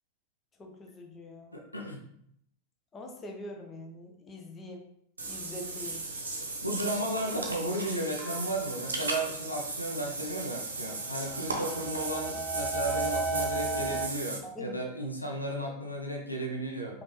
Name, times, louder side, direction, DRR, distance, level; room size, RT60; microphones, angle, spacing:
voice 1, 0.6-1.6 2.9-4.8 5.2-6.0 14.6-14.8, left 1 dB, 20° left, 2 dB, 0.8 m, -43 dB
voice 2, 1.5-2.0 6.6-17.0, right 1 dB, 85° left, 0 dB, 0.8 m, -34 dB
Water / Bathtub (filling or washing), 5.2-14.4, right 3 dB, 75° right, 0.8 m, -36 dB
sound 1, 8.2-8.8 10.7-14.1, right 2 dB, 5° right, 0.4 m, -34 dB
5.1 x 2.7 x 3.2 m, 0.70 s
figure-of-eight pair, 90°, 0 cm